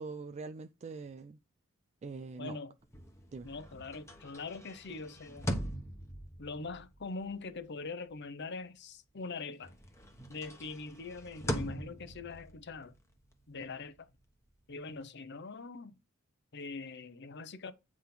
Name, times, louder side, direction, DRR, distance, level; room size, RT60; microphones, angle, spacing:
voice 1, 0.0-1.4 2.0-2.6 3.3-3.5, right 4 dB, 30° right, 0.3 m, -43 dB
voice 2, 2.4-2.7 3.4-5.5 6.4-9.7 10.3-12.9 13.5-14.1 14.7-15.9 16.5-17.7, left 4 dB, 55° left, 0.8 m, -43 dB
sound 1, 2.8-9.3 9.6-15.0, equal, 15° left, 1.2 m, -43 dB
8.6 x 3.7 x 5.9 m
head